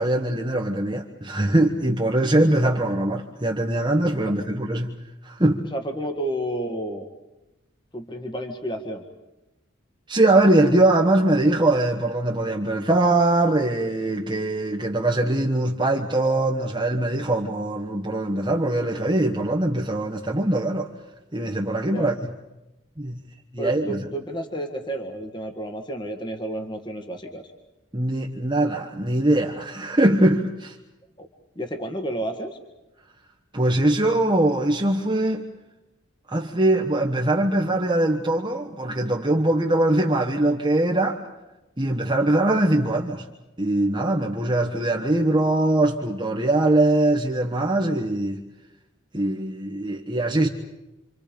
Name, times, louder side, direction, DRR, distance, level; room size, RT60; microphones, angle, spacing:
voice 1, 0.0-4.9 5.2-5.6 10.1-20.9 21.3-22.1 23.0-23.2 23.5-24.0 27.9-30.8 33.5-35.5 36.3-41.2 41.8-43.3 43.6-48.4 49.1-50.5, right 1 dB, 25° right, 1.3 m, -22 dB
voice 2, 5.7-7.1 7.9-9.0 21.8-22.1 23.6-27.5 31.2-31.3 31.6-32.6, right 1 dB, 20° left, 1.8 m, -31 dB
29.0 x 26.0 x 5.2 m
head